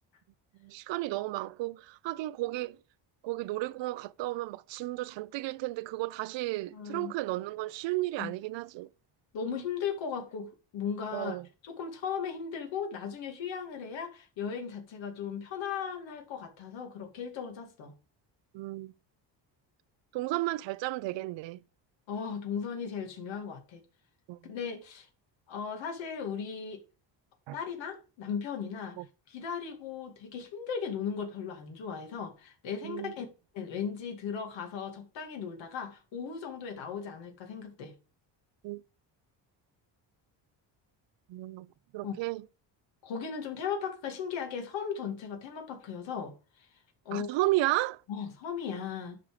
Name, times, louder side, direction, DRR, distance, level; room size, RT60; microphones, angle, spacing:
voice 1, 0.6-2.8 3.2-8.9 11.1-11.5 18.5-18.9 20.1-21.6 24.3-24.5 27.5-27.6 29.0-29.1 32.8-33.1 38.6-38.8 41.3-41.7 41.9-42.4 47.1-48.0, right 18 dB, 80° right, 0.6 m, -33 dB
voice 2, 6.7-7.1 8.2-8.3 9.3-11.4 11.6-17.9 22.1-23.8 24.4-25.1 25.5-26.8 27.5-29.0 29.3-33.3 33.5-37.9 42.0-42.1 43.0-46.7 47.1-47.3 48.1-49.2, left 6 dB, 85° left, 2.3 m, -37 dB
9.9 x 5.6 x 4.8 m
cardioid pair, 115°, 44 cm